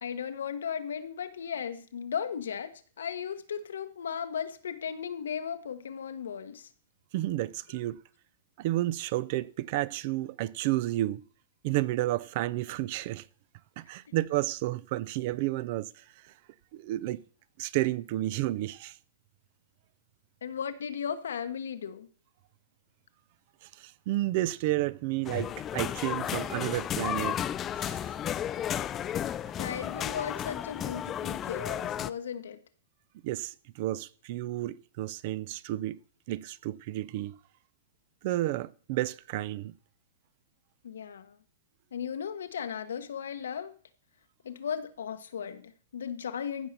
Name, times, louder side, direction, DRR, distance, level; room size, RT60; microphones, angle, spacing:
voice 1, 0.0-6.7 20.4-22.1 29.6-32.6 40.8-41.4 41.9-43.7 44.4-46.7, left 7 dB, 90° left, 1.2 m, -36 dB
voice 2, 7.1-8.0 8.6-11.2 11.6-13.3 13.8-16.0 16.7-17.2 17.6-19.0 23.6-27.4 27.8-28.0 33.2-36.0 36.3-37.4 38.2-39.7, right 16 dB, 45° right, 0.5 m, -31 dB
sound 1, 25.2-32.1, left 10 dB, 20° left, 0.4 m, -33 dB
14.5 x 5.6 x 6.7 m
hypercardioid pair, 155°, 0 cm